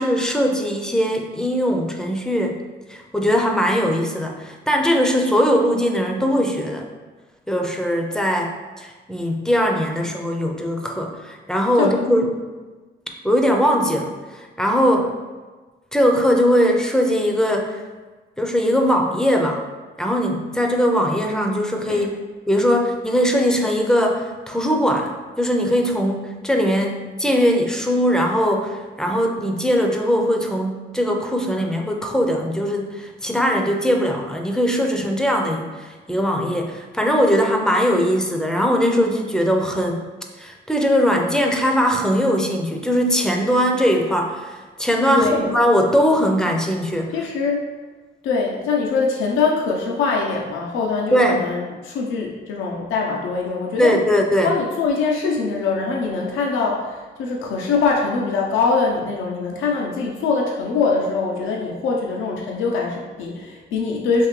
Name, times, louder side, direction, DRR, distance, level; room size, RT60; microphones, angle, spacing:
voice 1, 0.0-2.6 2.9-6.9 7.5-12.3 13.2-15.2 15.9-17.8 18.4-19.6 20.0-22.2 22.5-40.0 40.4-47.3 51.1-51.4 53.8-54.5, equal, 5° left, 2 dB, 0.5 m, -20 dB
voice 2, 45.1-45.5 47.1-47.6 48.2-54.0 54.4-64.3, left 4 dB, 90° left, -1 dB, 0.5 m, -23 dB
3.6 x 2.7 x 3.1 m, 1.3 s
cardioid pair, 90°, 20 cm